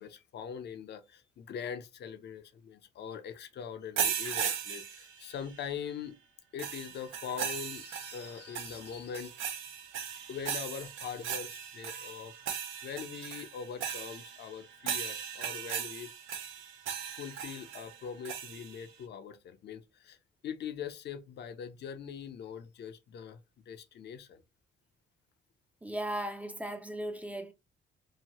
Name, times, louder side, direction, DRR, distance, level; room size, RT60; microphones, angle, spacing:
voice 1, 0.0-6.2 6.5-9.5 10.3-12.3 12.8-16.1 17.1-20.2 20.4-23.4 23.7-24.4, left 7 dB, 60° left, 0.5 m, -42 dB
sound 1, 4.0-5.6 6.6-18.9, right 8 dB, 80° right, 0.6 m, -38 dB
voice 2, 25.8-27.5, right 1 dB, 5° right, 0.4 m, -37 dB
2.8 x 2.1 x 2.9 m
cardioid pair, 90°, 20 cm